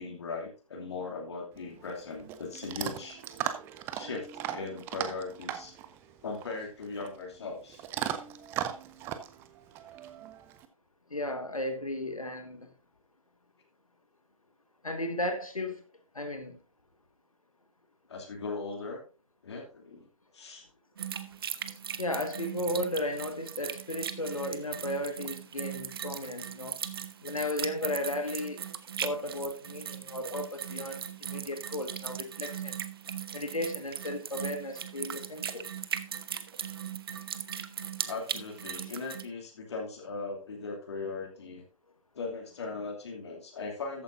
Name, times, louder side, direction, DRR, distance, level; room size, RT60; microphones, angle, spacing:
voice 1, 0.0-3.2 3.9-5.8 6.2-7.8 18.1-19.0 19.4-20.1 20.3-20.7 38.1-41.6 42.1-44.0, left 4 dB, 50° left, 2.8 m, -39 dB
Chewing mastication / Dog, 1.5-10.6, right 11 dB, 15° right, 0.6 m, -38 dB
voice 2, 11.1-12.7 14.8-15.8 16.1-16.6 22.0-26.8 27.2-28.6 29.0-32.8 33.3-35.7, left 1 dB, 85° left, 1.5 m, -35 dB
sound 1, 21.0-39.2, right 8 dB, 45° right, 0.9 m, -39 dB
14.0 x 9.0 x 2.6 m
figure-of-eight pair, 135°, 18 cm